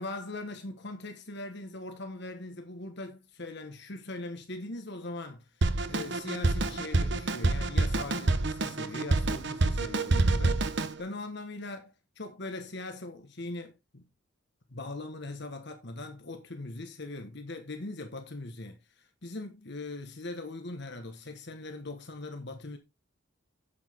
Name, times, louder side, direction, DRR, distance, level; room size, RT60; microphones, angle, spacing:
voice 1, 0.0-10.6 11.0-14.1 14.7-22.8, left 2 dB, 55° left, 1.5 m, -41 dB
Drum kit, 5.6-10.9, right 2 dB, 60° right, 1.0 m, -27 dB
8.2 x 8.1 x 3.7 m
head